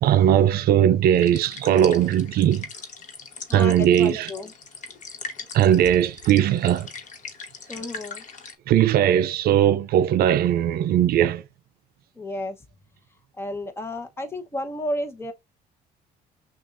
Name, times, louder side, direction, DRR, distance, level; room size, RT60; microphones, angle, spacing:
voice 1, 0.0-2.7 3.5-4.3 5.5-6.9 8.7-11.4, right 10 dB, 65° right, 0.5 m, -19 dB
sound 1, 1.1-8.5, left 4 dB, 45° left, 1.2 m, -40 dB
voice 2, 3.5-4.5 7.7-8.2 12.2-12.6 13.4-15.3, left 1 dB, 15° left, 1.0 m, -32 dB
6.1 x 2.4 x 2.5 m
cardioid pair, 110°, 17 cm